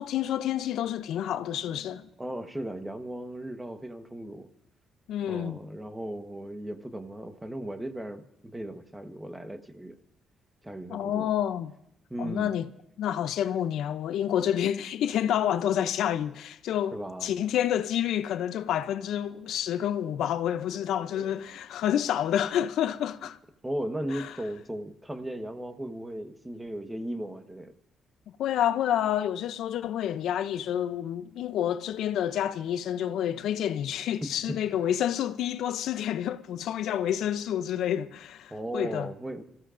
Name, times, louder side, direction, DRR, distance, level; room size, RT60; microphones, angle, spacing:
voice 1, 0.0-2.1 5.1-5.6 10.9-11.7 12.2-12.7 13.0-23.4 24.1-24.3 28.4-39.1, left 10 dB, 80° left, 0.5 m, -29 dB
voice 2, 2.2-4.5 5.3-10.0 10.6-11.3 12.1-12.5 16.9-17.3 21.1-21.3 23.6-27.7 34.2-34.6 38.5-39.4, right 1 dB, 10° right, 1.2 m, -36 dB
25.5 x 15.5 x 2.5 m
cardioid pair, 90°, 0 cm